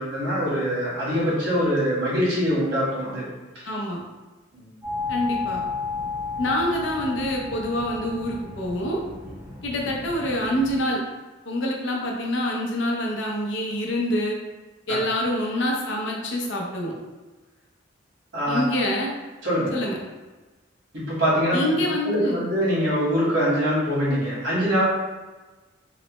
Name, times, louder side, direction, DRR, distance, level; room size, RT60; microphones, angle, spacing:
voice 1, 0.0-3.3 3.5-3.7 4.5-4.7 14.9-15.0 18.3-18.6 19.4-19.7 21.0-21.6 22.1-24.8, equal, 65° right, -8 dB, 1.5 m, -23 dB
voice 2, 3.7-4.0 5.1-5.6 6.4-9.0 9.6-11.0 11.5-14.4 14.9-16.9 18.5-19.1 19.7-20.0 21.5-22.5, left 1 dB, 70° left, -1 dB, 0.6 m, -26 dB
sound 1, 4.8-10.8, left 4 dB, 5° right, 0.7 m, -33 dB
3.1 x 2.0 x 3.0 m, 1.2 s
head